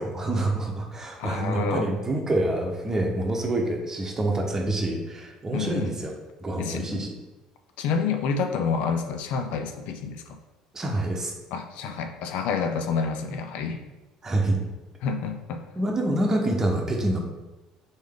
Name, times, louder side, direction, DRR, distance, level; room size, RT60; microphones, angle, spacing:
voice 1, 0.0-6.1 6.4-7.1 10.7-11.3 14.2-14.6 15.8-17.2, right 1 dB, 25° right, 1 dB, 0.9 m, -26 dB
voice 2, 1.2-1.9 5.5-5.9 6.6-7.1 7.8-10.4 11.5-13.8 15.0-15.6, left 5 dB, 70° left, 6 dB, 0.5 m, -28 dB
3.9 x 3.6 x 3.5 m, 1.1 s
supercardioid pair, 80°, 2 cm